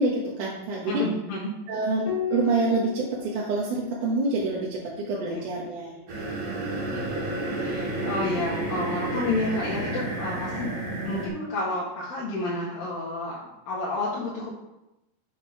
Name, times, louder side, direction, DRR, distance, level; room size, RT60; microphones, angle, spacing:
voice 1, 0.0-1.0 1.7-6.0, right 2 dB, 65° right, -4 dB, 2.7 m, -27 dB
voice 2, 0.9-1.5 5.3-5.5 7.6-10.7 11.0-14.5, left 2 dB, 80° left, -7 dB, 3.6 m, -30 dB
Piano, 2.0-6.9 8.5-9.3, left 9 dB, 10° left, 2.0 m, -38 dB
sound 1, 6.1-11.3, right 2 dB, 40° right, 2.6 m, -30 dB
8.9 x 5.3 x 5.8 m, 0.89 s
omnidirectional pair, 4.1 m